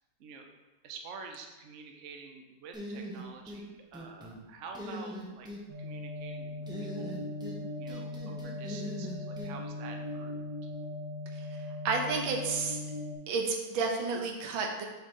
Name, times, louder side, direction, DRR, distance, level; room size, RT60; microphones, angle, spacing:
voice 1, 0.8-5.5 5.8-7.2 7.8-10.7, right 5 dB, 65° right, 3 dB, 0.7 m, -48 dB
sound 1, 2.7-3.6 3.9-4.4 4.7-5.6 6.7-7.6 7.9-9.5, equal, 5° right, 0.6 m, -41 dB
sound 2, 5.7-13.2, left 2 dB, 35° right, 1.2 m, -39 dB
voice 2, 11.3-12.8 13.3-14.8, right 4 dB, 85° right, 2 dB, 1.6 m, -31 dB
7.7 x 3.2 x 5.4 m, 1.1 s
omnidirectional pair, 2.1 m